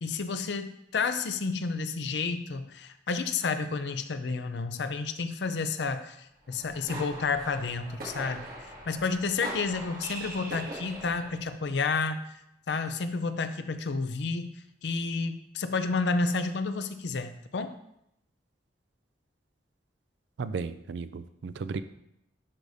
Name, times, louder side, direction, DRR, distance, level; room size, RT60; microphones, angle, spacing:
voice 1, 0.0-8.5 8.9-12.2 12.7-14.5 14.8-17.8, left 4 dB, 65° left, 10 dB, 0.5 m, -30 dB
sound 1, 6.5-11.5, right 1 dB, 50° right, 1.9 m, -41 dB
voice 2, 20.4-21.8, right 4 dB, 70° right, 13 dB, 0.4 m, -34 dB
11.0 x 4.9 x 2.7 m, 0.79 s
head